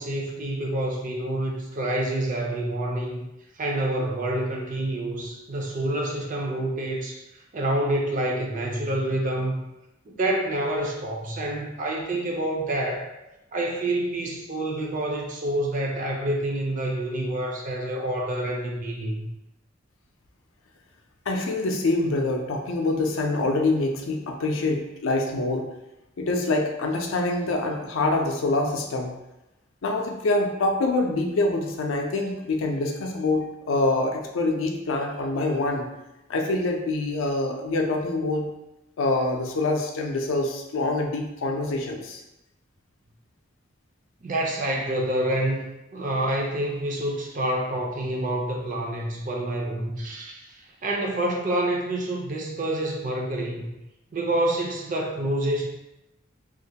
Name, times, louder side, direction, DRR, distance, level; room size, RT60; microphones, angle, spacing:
voice 1, 0.0-3.3 3.6-7.2 7.5-9.6 10.1-13.1 13.5-19.3 44.2-53.7 54.1-55.7, right 1 dB, 40° right, 0 dB, 0.4 m, -27 dB
voice 2, 21.3-25.7 26.2-29.2 29.8-35.9 36.3-38.5 39.0-42.2, left 2 dB, 85° left, 2 dB, 0.4 m, -25 dB
2.4 x 2.1 x 2.7 m, 0.92 s
head